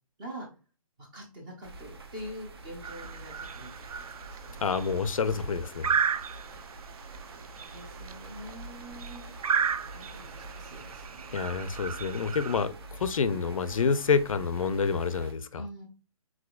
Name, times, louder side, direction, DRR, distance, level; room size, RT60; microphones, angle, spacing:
voice 1, 1.0-3.7 4.2-4.7 7.4-9.3 9.9-11.3 15.6-15.8, equal, 10° right, 1 dB, 0.6 m, -45 dB
sound 1, 1.6-15.3, right 2 dB, 40° right, 0.8 m, -46 dB
sound 2, 2.8-12.7, right 7 dB, 80° right, 0.5 m, -35 dB
voice 2, 4.6-5.9 11.3-15.6, left 5 dB, 65° left, 13 dB, 0.5 m, -28 dB
4.9 x 3.8 x 2.3 m, 0.33 s
hypercardioid pair, 170°, 19 cm